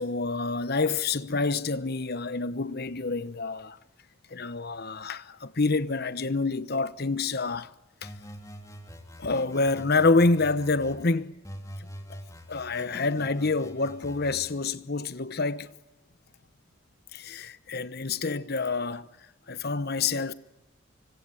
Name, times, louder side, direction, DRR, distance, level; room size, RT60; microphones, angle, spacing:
voice 1, 0.0-3.8 4.3-7.7 8.0-8.1 9.2-11.3 11.8-12.2 12.5-15.7 17.1-19.1 19.5-20.3, left 3 dB, 45° left, 1.0 m, -27 dB
sound 1, 8.0-11.0 11.4-14.5, equal, 15° left, 3.0 m, -45 dB
25.5 x 24.5 x 8.4 m
head